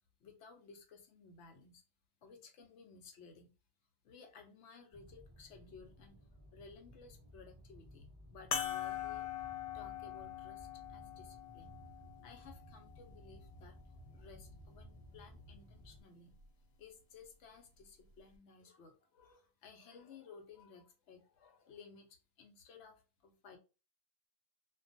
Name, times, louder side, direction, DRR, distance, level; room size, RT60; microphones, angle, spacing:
voice 1, 0.2-1.8 2.2-3.5 4.0-6.2 6.5-9.3 9.7-11.7 12.2-13.8 14.1-16.3 16.8-23.6, left 5 dB, 65° left, 4 dB, 0.8 m, -57 dB
sound 1, 4.9-16.0, equal, 10° left, 0.9 m, -57 dB
sound 2, 8.5-13.3 14.1-14.2 16.3-16.5, left 9 dB, 90° left, 1.1 m, -42 dB
2.4 x 2.2 x 2.5 m, 0.31 s
omnidirectional pair, 1.5 m